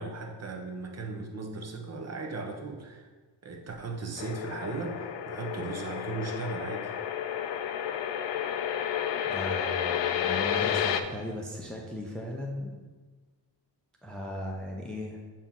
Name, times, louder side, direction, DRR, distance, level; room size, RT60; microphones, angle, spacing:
voice 1, 0.0-3.1 3.4-6.9, right 3 dB, 35° right, 2 dB, 0.8 m, -37 dB
sound 1, 4.2-11.0, left 9 dB, 70° left, 0.6 m, -31 dB
voice 2, 9.3-12.8 14.0-15.2, left 1 dB, ahead, -1 dB, 0.5 m, -37 dB
7.1 x 4.4 x 3.8 m, 1.3 s
wide cardioid pair, 150°, 45 cm